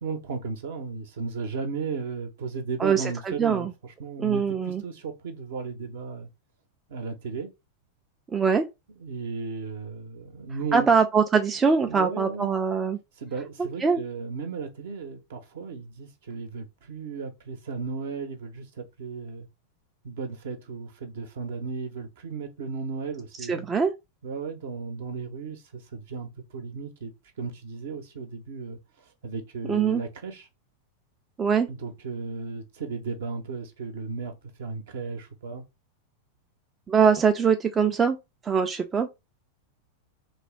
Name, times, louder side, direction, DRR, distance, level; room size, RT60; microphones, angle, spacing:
voice 1, 0.0-6.3 6.9-7.5 9.0-11.0 11.8-12.6 13.2-19.5 20.0-23.7 24.2-27.1 27.4-28.8 29.2-30.5 31.7-35.6, right 4 dB, 55° right, 0.7 m, -35 dB
voice 2, 2.8-3.7 4.2-4.8 8.3-8.7 10.7-13.0 13.8-14.0 23.5-23.9 29.7-30.0 31.4-31.7 36.9-38.2 38.4-39.2, right 6 dB, 20° right, 0.3 m, -22 dB
3.2 x 2.6 x 3.0 m
figure-of-eight pair, 90°, 0 cm